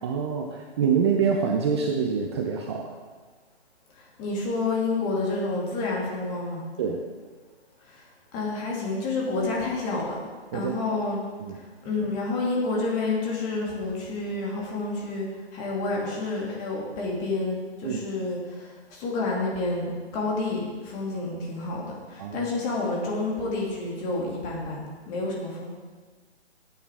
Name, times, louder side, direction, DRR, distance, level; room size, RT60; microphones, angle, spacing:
voice 1, 0.0-2.9 6.8-7.0 10.5-11.0 11.4-11.6 17.8-18.0 22.2-22.5, right 6 dB, 25° right, 2 dB, 0.6 m, -26 dB
voice 2, 4.0-6.6 7.8-8.1 8.3-10.2 10.5-11.2 11.5-25.7, left 3 dB, 20° left, -3 dB, 2.4 m, -29 dB
15.0 x 9.0 x 3.5 m, 1.4 s
hypercardioid pair, 150°, 32 cm